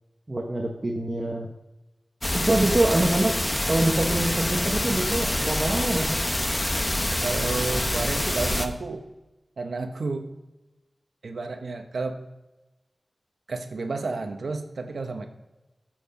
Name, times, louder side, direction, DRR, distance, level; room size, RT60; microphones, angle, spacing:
voice 1, 0.3-1.5 2.3-3.4 3.7-6.1, right 1 dB, 35° right, 1 dB, 1.1 m, -25 dB
sound 1, 2.2-8.7, left 1 dB, 20° left, 0.9 m, -26 dB
voice 2, 7.2-9.0 9.6-10.3 11.2-12.2 13.5-15.3, right 3 dB, 85° right, 6 dB, 0.9 m, -31 dB
8.4 x 7.7 x 5.2 m, 1.0 s
wide cardioid pair, 65°, 0 cm